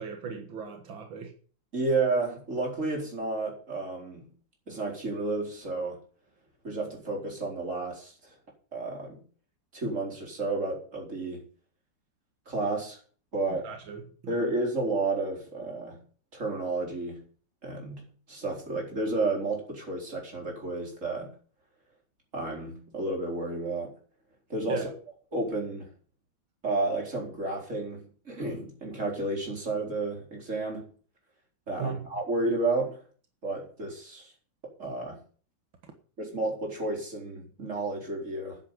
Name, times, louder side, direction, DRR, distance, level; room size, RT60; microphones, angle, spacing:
voice 1, 0.0-1.3 13.5-14.5 24.7-24.9 31.8-32.1, right 6 dB, 90° right, 2.4 m, -37 dB
voice 2, 1.7-4.3 4.7-6.0 6.6-8.3 8.7-9.2 9.7-11.4 12.5-13.0 13.3-13.7 14.3-16.0 16.3-17.2 17.6-21.3 22.3-23.9 24.5-24.9 25.3-25.9 26.6-30.9 31.7-33.0 33.4-34.3 34.8-35.2 36.2-38.6, right 2 dB, 40° right, 4.6 m, -31 dB
9.9 x 8.7 x 7.6 m
omnidirectional pair, 2.1 m